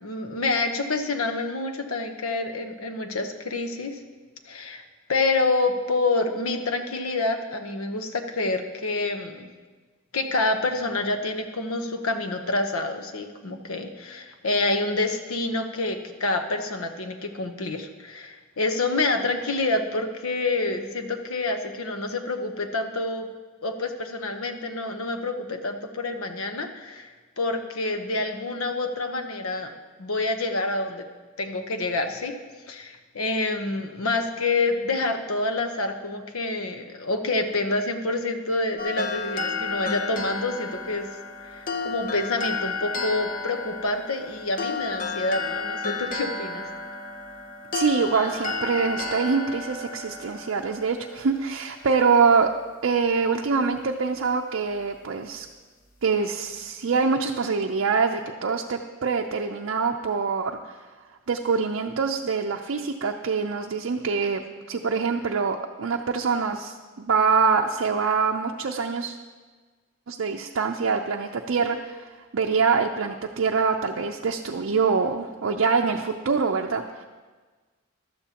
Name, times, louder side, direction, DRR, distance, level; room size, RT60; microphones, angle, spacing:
voice 1, 0.0-4.0 4.5-4.8 5.1-9.5 10.1-23.3 23.6-27.1 27.4-29.7 30.0-31.0 31.4-32.3 32.7-41.1 41.4-46.6, left 2 dB, 85° left, 6 dB, 1.0 m, -27 dB
sound 1, 38.8-52.0, left 3 dB, 40° left, 0.8 m, -32 dB
voice 2, 47.7-52.5 52.8-55.5 56.0-60.8 61.3-64.4 64.7-69.2 70.1-77.0, right 5 dB, 65° right, 2 dB, 0.5 m, -24 dB
15.0 x 12.0 x 2.9 m, 1.4 s
head